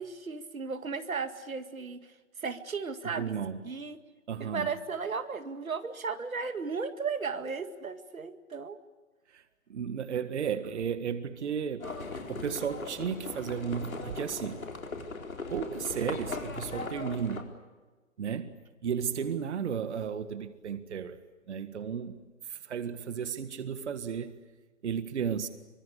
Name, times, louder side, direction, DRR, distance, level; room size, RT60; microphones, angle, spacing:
voice 1, 0.0-2.1 2.4-3.3 3.6-4.0 4.4-8.8, right 5 dB, 85° right, 2.1 m, -35 dB
voice 2, 3.0-3.6 4.3-4.7 9.3-9.4 9.7-11.9 12.3-14.6 14.9-15.1 15.5-17.6 18.2-18.6 18.8-21.2 21.5-24.3 24.8-25.5, right 7 dB, 55° right, 1.8 m, -34 dB
Livestock farm animals working animals, 11.8-17.4, left 3 dB, 85° left, 4.3 m, -39 dB
25.0 x 25.0 x 8.3 m
hypercardioid pair, 150°, 40 cm